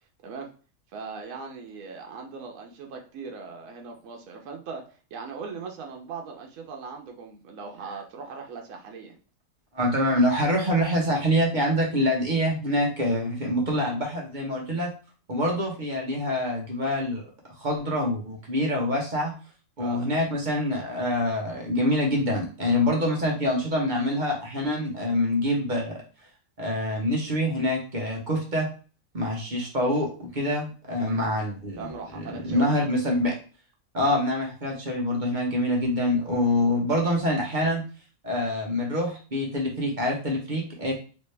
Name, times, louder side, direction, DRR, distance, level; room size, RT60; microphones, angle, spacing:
voice 1, 0.9-9.2 19.8-20.1 31.8-32.7, right 5 dB, 75° right, 2 dB, 1.1 m, -39 dB
voice 2, 9.7-14.9 15.3-17.3 17.6-19.3 19.8-26.0 26.6-28.7 29.1-33.3 33.9-37.8 38.2-40.9, left 1 dB, 40° right, -1 dB, 0.9 m, -25 dB
3.2 x 2.7 x 3.2 m, 0.37 s
omnidirectional pair, 1.5 m